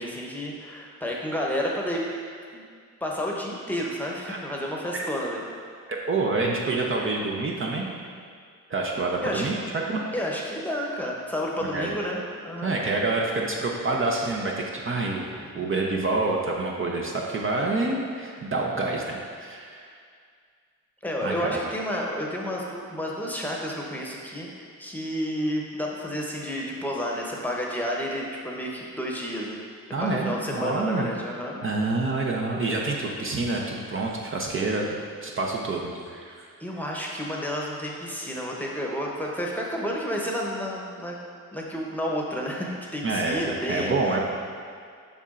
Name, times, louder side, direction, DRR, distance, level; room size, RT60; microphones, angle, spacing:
voice 1, 0.0-2.1 2.5-2.6 3.0-5.4 9.2-9.5 10.1-12.8 15.6-15.7 21.0-29.6 30.0-31.6 36.6-41.2 41.5-44.2, equal, 5° left, -2 dB, 0.9 m, -31 dB
voice 2, 5.9-7.9 8.7-9.6 9.8-10.0 11.6-11.9 12.6-15.3 15.5-19.9 21.2-21.6 29.9-31.1 31.6-35.0 35.2-36.5 43.0-43.4 43.7-44.2, right 3 dB, 40° right, -1 dB, 0.7 m, -27 dB
7.0 x 5.6 x 2.5 m, 2.1 s
cardioid pair, 80°, 32 cm